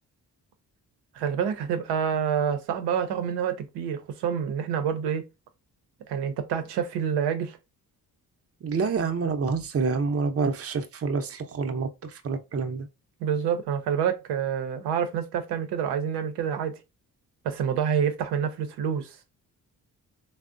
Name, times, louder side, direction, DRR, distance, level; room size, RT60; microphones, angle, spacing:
voice 1, 1.1-5.2 6.1-7.6 13.2-16.8 17.4-19.2, right 8 dB, 85° right, 0.6 m, -27 dB
voice 2, 8.6-12.9, right 4 dB, 40° right, 0.6 m, -27 dB
3.4 x 2.0 x 2.5 m
supercardioid pair, 50°, 39 cm